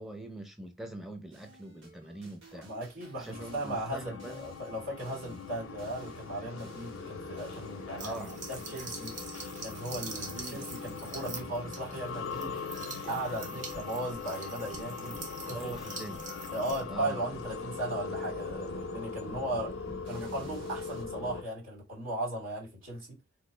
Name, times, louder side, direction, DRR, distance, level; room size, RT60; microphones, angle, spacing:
voice 1, 0.0-2.7 3.2-4.4 8.0-8.3 10.3-10.7 15.5-16.3 16.9-17.2, right 1 dB, ahead, 0.5 m, -43 dB
sound 1, 1.3-21.0, right 2 dB, 60° right, 1.1 m, -53 dB
voice 2, 2.6-8.2 8.5-9.1 9.6-12.6 13.0-15.2 15.5-15.8 16.5-19.7 20.0-23.2, right 1 dB, 75° right, 2.1 m, -37 dB
sound 2, 3.3-21.4, left 5 dB, 70° left, 0.5 m, -41 dB
sound 3, 8.0-16.8, right 4 dB, 40° right, 0.7 m, -44 dB
3.0 x 2.3 x 3.2 m
head